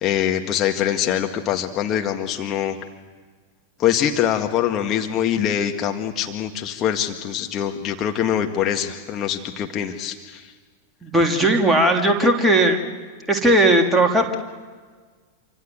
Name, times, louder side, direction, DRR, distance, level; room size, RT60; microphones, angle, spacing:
voice 1, 0.0-2.8 3.8-10.5, left 10 dB, 30° left, 4 dB, 1.9 m, -23 dB
voice 2, 11.0-12.8 13.3-14.4, right 1 dB, 5° right, 1 dB, 3.2 m, -17 dB
27.5 x 25.5 x 8.0 m, 1.5 s
figure-of-eight pair, 90°, 0 cm